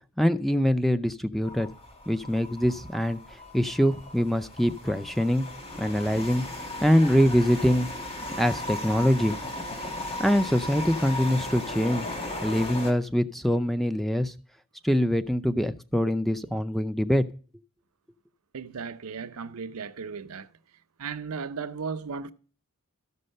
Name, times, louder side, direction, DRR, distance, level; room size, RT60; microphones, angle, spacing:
voice 1, 0.2-1.7 2.1-5.5 5.8-7.9 8.4-9.3 10.2-12.1 12.4-14.3 14.8-17.2, equal, ahead, 0.4 m, -24 dB
sound 1, 1.4-12.9, left 1 dB, 25° left, 1.6 m, -37 dB
voice 2, 18.5-20.5 21.0-22.3, right 5 dB, 80° right, 0.6 m, -35 dB
13.0 x 5.4 x 6.5 m
head